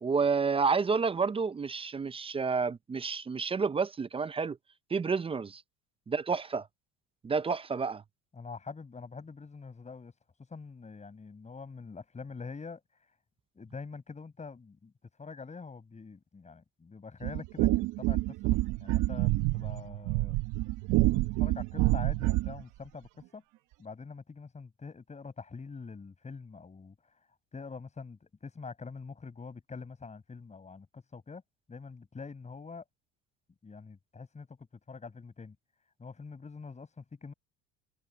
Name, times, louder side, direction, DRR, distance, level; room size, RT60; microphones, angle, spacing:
voice 1, 0.0-4.6 4.9-5.6 6.1-6.7 7.2-8.0, right 5 dB, 15° right, 0.6 m, -30 dB
voice 2, 8.3-10.1 10.5-12.8 13.6-14.9 15.2-20.4 21.1-23.4 23.8-27.0 27.5-31.4 31.7-32.8 33.6-34.6 34.9-35.6 36.0-37.3, left 4 dB, 20° left, 7.5 m, -45 dB
sound 1, 17.2-22.6, right 19 dB, 60° right, 1.0 m, -28 dB
supercardioid pair, 110°, 34 cm